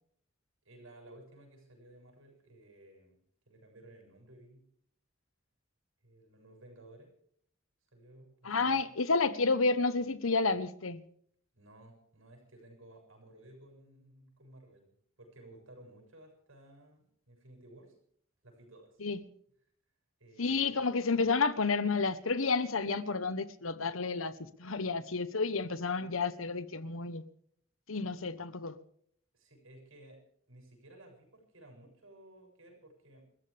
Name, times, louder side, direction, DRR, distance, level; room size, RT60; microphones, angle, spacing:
voice 1, 0.6-3.2 3.5-4.6 6.0-7.1 7.9-8.8 11.5-14.9 15.2-17.9 18.4-19.0 20.2-20.8 29.3-30.2 30.5-33.3, right 1 dB, 80° right, 7.5 m, -56 dB
voice 2, 8.4-11.0 19.0-19.2 20.4-24.3 24.6-27.2 27.9-28.8, left 4 dB, 90° left, 1.2 m, -30 dB
29.5 x 14.0 x 3.5 m
head